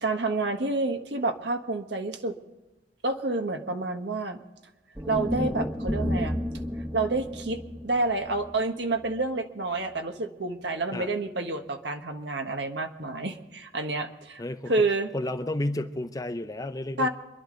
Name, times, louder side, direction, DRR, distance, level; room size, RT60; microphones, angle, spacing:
voice 1, 0.0-2.3 3.0-4.4 5.1-6.4 6.9-14.4 14.7-15.1 17.0-17.1, right 2 dB, 75° right, 5 dB, 1.5 m, -29 dB
sound 1, 4.9-9.2, equal, 10° right, 1.1 m, -32 dB
voice 2, 14.4-14.7 15.1-17.1, left 1 dB, 20° left, 9 dB, 0.7 m, -31 dB
26.0 x 11.5 x 3.9 m, 1.1 s
head